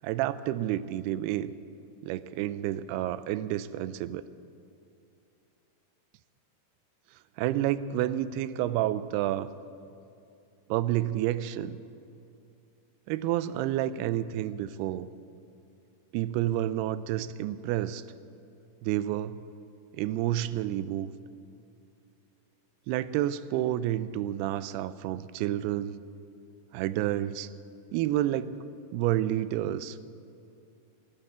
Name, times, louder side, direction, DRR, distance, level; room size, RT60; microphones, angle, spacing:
voice 1, 0.0-1.5 2.0-4.2 7.4-9.5 10.7-11.8 13.1-15.1 16.1-18.0 18.8-19.4 19.9-21.1 22.9-26.0 26.7-27.5 27.9-28.6 28.9-30.0, right 13 dB, 85° right, 15 dB, 2.6 m, -29 dB
17.0 x 10.0 x 8.2 m, 2.6 s
omnidirectional pair, 4.6 m